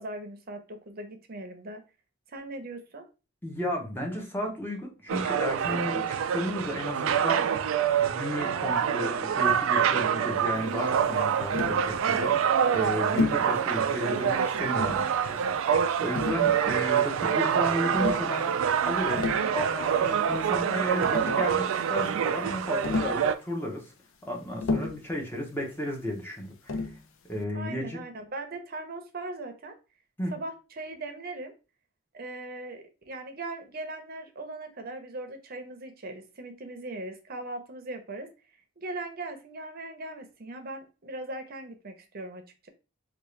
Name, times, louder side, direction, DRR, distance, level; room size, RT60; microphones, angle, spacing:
voice 1, 0.0-1.8 2.3-3.0 27.5-29.7 30.3-31.5 32.1-38.3 38.8-42.7, right 2 dB, 45° right, 6 dB, 0.7 m, -39 dB
voice 2, 3.4-7.4 8.0-18.5 18.8-19.3 19.5-23.9 24.2-26.9 27.3-28.0 30.2-30.4, left 1 dB, 10° left, 0 dB, 0.9 m, -33 dB
sound 1, 5.1-23.3, right 8 dB, 70° right, 0.3 m, -26 dB
Tap, 11.5-11.8 13.2-13.5 14.5-15.1 16.1-16.9 17.9-18.3 19.0-19.5 20.7-20.8 21.0-21.5 22.8-23.2 24.6-25.1 26.7-27.0, left 3 dB, 65° left, 0.5 m, -31 dB
3.6 x 2.4 x 3.2 m, 0.31 s
head